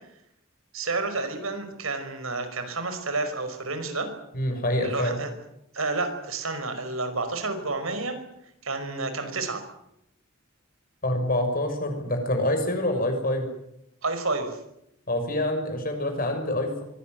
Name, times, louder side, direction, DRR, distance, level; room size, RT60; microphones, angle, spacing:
voice 1, 0.7-4.1 4.8-5.3 5.7-8.2 8.6-9.6 14.0-14.6, right 3 dB, 85° right, 8 dB, 5.4 m, -30 dB
voice 2, 4.3-5.2 11.0-13.5 15.1-16.8, left 1 dB, 45° left, 5 dB, 6.4 m, -26 dB
24.5 x 18.0 x 9.5 m, 0.80 s
head